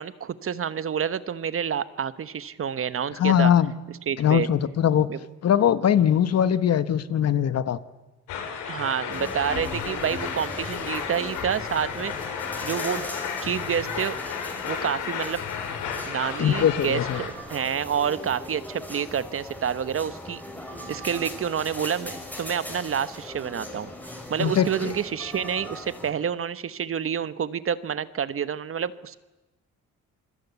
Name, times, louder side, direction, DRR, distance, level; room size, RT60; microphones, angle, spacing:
voice 1, 0.0-3.5 4.1-4.5 5.1-5.2 8.7-12.1 12.6-13.1 13.4-14.2 14.6-15.4 16.1-20.4 20.9-23.9 24.3-29.2, right 8 dB, 45° right, 15 dB, 1.1 m, -28 dB
voice 2, 3.2-3.7 4.2-5.1 5.4-7.8 16.4-17.2 24.4-24.9, left 9 dB, 55° left, 14 dB, 1.3 m, -21 dB
sound 1, 8.3-17.3, left 7 dB, 85° left, 4.4 m, -33 dB
sound 2, 9.1-26.1, left 1 dB, 5° left, 6.1 m, -40 dB
27.0 x 21.0 x 8.3 m, 1.1 s
cardioid pair, 90°, 30 cm